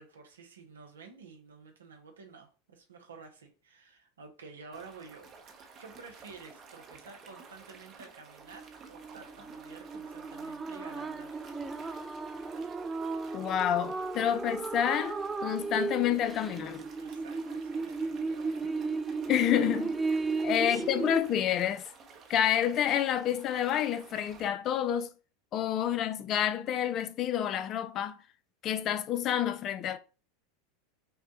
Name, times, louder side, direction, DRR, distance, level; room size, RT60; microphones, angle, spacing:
voice 1, 0.0-11.4 17.0-18.8 20.3-20.9, right 5 dB, 85° right, 0.8 m, -51 dB
sound 1, 4.7-24.5, right 5 dB, 40° right, 0.8 m, -52 dB
sound 2, 8.5-21.2, right 4 dB, 15° right, 0.4 m, -35 dB
voice 2, 13.3-16.9 19.3-19.9 20.4-21.8 22.3-25.1 25.5-28.2 28.6-30.0, left 10 dB, 40° left, 0.5 m, -29 dB
5.5 x 2.2 x 2.9 m
hypercardioid pair, 90°, 0 cm